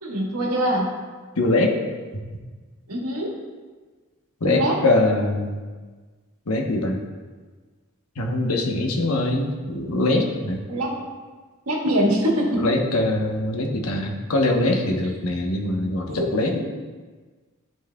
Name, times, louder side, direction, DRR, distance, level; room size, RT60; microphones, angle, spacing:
voice 1, 0.0-0.9 2.9-3.3 4.4-4.7 10.7-10.9 11.7-12.7 16.1-16.6, right 1 dB, 90° right, -2 dB, 1.6 m, -23 dB
voice 2, 1.4-1.7 4.4-5.6 6.5-7.0 8.2-10.6 12.6-16.6, left 2 dB, 80° left, 2 dB, 1.0 m, -22 dB
12.0 x 4.6 x 2.3 m, 1.4 s
head